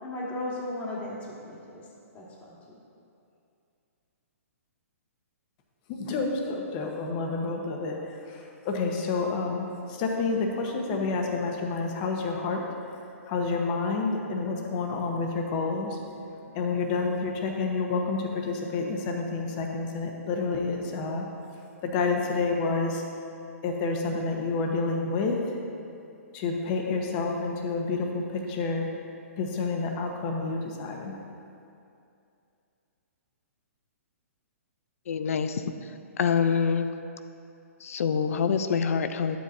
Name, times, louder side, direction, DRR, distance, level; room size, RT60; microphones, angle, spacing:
voice 1, 0.0-1.9 2.1-2.6, left 1 dB, 20° left, -4 dB, 1.6 m, -36 dB
voice 2, 5.9-8.0 8.3-12.6 13.3-16.0 16.5-21.2 21.8-23.0 23.6-25.4 26.3-28.9 29.4-31.1, left 4 dB, 35° left, 1 dB, 1.1 m, -29 dB
voice 3, 35.1-35.6 36.2-36.9 37.8-39.4, left 6 dB, 65° left, 10 dB, 0.5 m, -25 dB
11.0 x 7.7 x 2.7 m, 2.6 s
hypercardioid pair, 140°, 8 cm